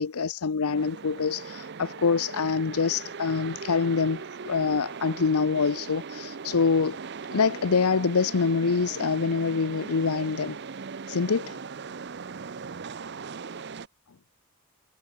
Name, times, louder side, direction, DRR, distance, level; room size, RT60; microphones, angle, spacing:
voice 1, 0.0-7.0 7.3-10.6 11.1-11.6, left 5 dB, 80° left, 0.7 m, -25 dB
sound 1, 0.6-13.9, right 5 dB, 50° right, 0.6 m, -39 dB
head